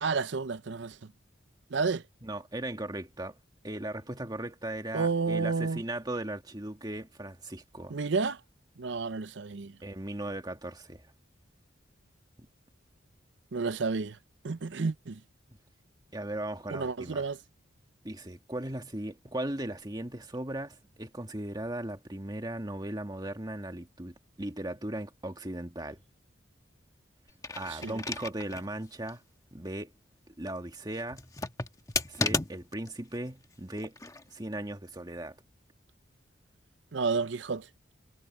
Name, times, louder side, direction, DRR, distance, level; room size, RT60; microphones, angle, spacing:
voice 1, 0.0-1.0 1.7-2.0 4.9-5.8 7.9-8.4 8.8-9.8 13.5-14.2 14.4-15.2 16.7-17.4 27.7-28.0 36.9-37.7, right 4 dB, 70° right, 0.6 m, -30 dB
voice 2, 2.2-3.4 3.6-8.0 9.8-11.1 16.1-17.3 18.0-26.0 27.6-29.2 29.5-29.9 30.4-31.3 32.1-34.0 34.3-35.4, right 1 dB, 20° right, 1.9 m, -37 dB
sound 1, 27.3-28.7 29.1-29.2 31.1-32.9 33.8-34.2, left 3 dB, 20° left, 1.2 m, -33 dB
head